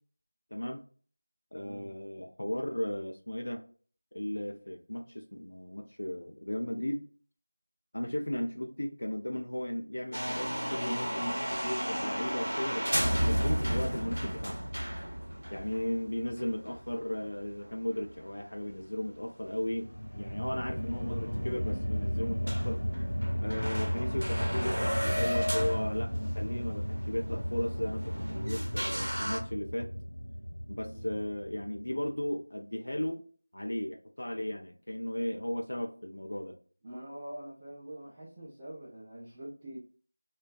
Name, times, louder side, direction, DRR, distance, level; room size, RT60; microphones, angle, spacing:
voice 1, 0.5-0.8 1.5-3.6 4.1-7.0 7.9-14.6 15.5-22.8 23.4-29.9 30.7-33.2 33.5-36.5, left 1 dB, 55° left, 3 dB, 0.3 m, -36 dB
voice 2, 1.6-1.9 20.9-21.5 30.8-31.3 36.8-39.8, right 1 dB, 15° right, -8 dB, 0.3 m, -45 dB
sound 1, 10.1-18.3 18.6-18.7 19.3-19.4 20.3-20.4 20.6-20.7 21.1-21.2 21.6-21.9 22.2-22.3 22.5-29.4, equal, 75° right, 0.7 m, -34 dB
sound 2, 19.6-32.0, equal, 80° left, 0.9 m, -34 dB
2.5 x 2.1 x 2.3 m, 0.42 s
figure-of-eight pair, 170°, 0 cm